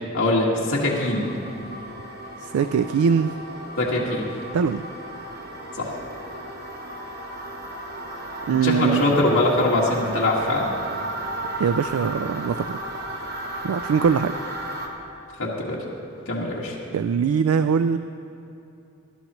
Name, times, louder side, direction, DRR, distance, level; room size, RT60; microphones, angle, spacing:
voice 1, 0.1-1.3 3.8-4.3 5.8-5.9 8.5-10.7 15.4-15.8 16.3-16.8, left 2 dB, 75° left, -5 dB, 1.8 m, -22 dB
sound 1, 0.9-14.9, right 1 dB, 45° right, 1.2 m, -34 dB
voice 2, 2.4-3.3 4.5-4.8 8.5-9.2 11.6-12.8 13.6-14.3 16.9-18.0, right 6 dB, 85° right, 11 dB, 0.3 m, -22 dB
19.5 x 12.0 x 3.1 m, 2.7 s
head